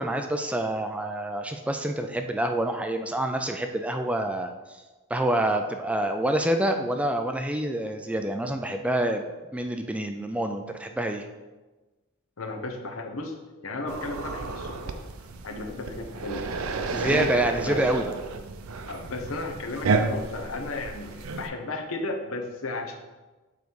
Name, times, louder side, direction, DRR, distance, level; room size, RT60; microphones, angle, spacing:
voice 1, 0.0-4.8 5.1-9.2 9.5-11.3 16.9-18.0, right 1 dB, 5° right, 5 dB, 0.3 m, -27 dB
voice 2, 12.4-13.4 13.6-14.9 15.4-16.5 16.9-17.3 17.6-17.8 18.9-22.9, left 2 dB, 70° left, 3 dB, 0.9 m, -34 dB
sound 1, 13.9-21.5, right 4 dB, 80° right, 0.5 m, -31 dB
7.0 x 3.9 x 4.7 m, 1.2 s
head